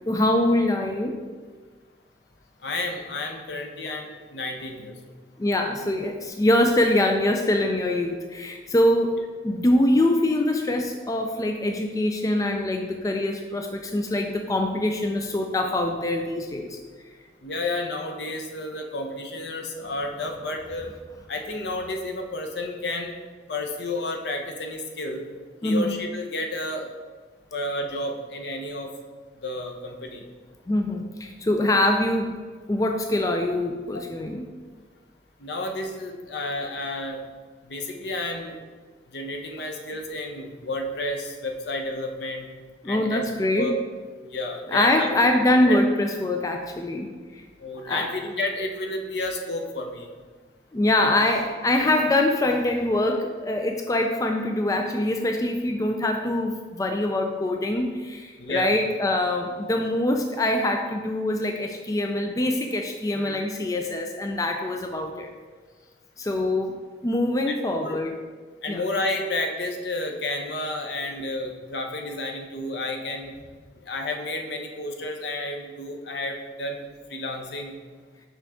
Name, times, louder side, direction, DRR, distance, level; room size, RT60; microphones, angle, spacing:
voice 1, 0.1-1.1 3.9-4.0 5.4-9.2 9.4-16.8 25.6-25.9 30.7-32.4 32.7-34.5 39.6-39.7 42.8-43.7 44.7-47.4 47.8-48.1 50.7-65.3 66.2-68.2 68.7-68.8, left 1 dB, 20° left, 3 dB, 0.3 m, -24 dB
voice 2, 2.6-4.9 17.4-20.9 21.3-23.1 23.5-25.2 25.6-26.9 27.5-28.9 29.4-30.2 33.9-34.0 35.4-37.2 37.6-38.6 39.1-42.5 42.9-43.2 43.6-43.7 44.3-45.2 45.7-45.8 47.6-50.1 51.0-51.1 51.8-51.9 58.4-58.7 63.2-63.4 67.5-67.6 67.8-68.0 68.6-73.3 73.9-77.8, left 2 dB, 70° left, 4 dB, 0.8 m, -31 dB
6.0 x 5.5 x 3.6 m, 1.5 s
head